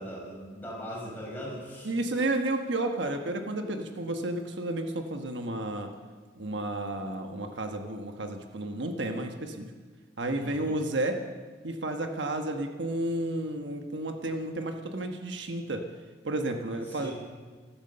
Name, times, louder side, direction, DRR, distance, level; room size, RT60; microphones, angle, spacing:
voice 1, 0.0-2.0 10.4-10.8 16.9-17.1, equal, 10° left, -5 dB, 5.9 m, -40 dB
voice 2, 1.8-5.9 6.4-9.7 10.2-11.2 11.6-15.8 16.2-17.1, right 2 dB, 70° right, 5 dB, 1.2 m, -32 dB
14.0 x 13.5 x 6.7 m, 1.5 s
head